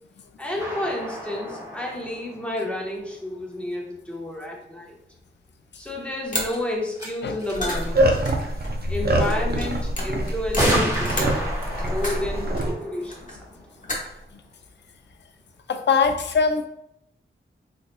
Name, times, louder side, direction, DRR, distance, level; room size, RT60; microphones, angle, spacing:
voice 1, 0.4-4.9 5.8-8.1 8.9-13.6, left 1 dB, 5° left, -2 dB, 1.0 m, -31 dB
sound 1, 0.6-3.3 5.9-6.0 6.5-6.6 6.9-7.1 7.4-8.0 9.2-9.3 10.6-14.1, equal, 15° right, 1.5 m, -30 dB
sound 2, 6.3-6.5 7.3-12.7 13.1-13.6 13.8-14.2, left 1 dB, 40° left, 1.0 m, -32 dB
sound 3, 7.7-12.7, right 1 dB, 50° right, 0.6 m, -25 dB
voice 2, 15.7-16.7, left 5 dB, 55° left, 6 dB, 0.4 m, -21 dB
4.0 x 2.9 x 2.2 m, 0.80 s
cardioid pair, 55°, 21 cm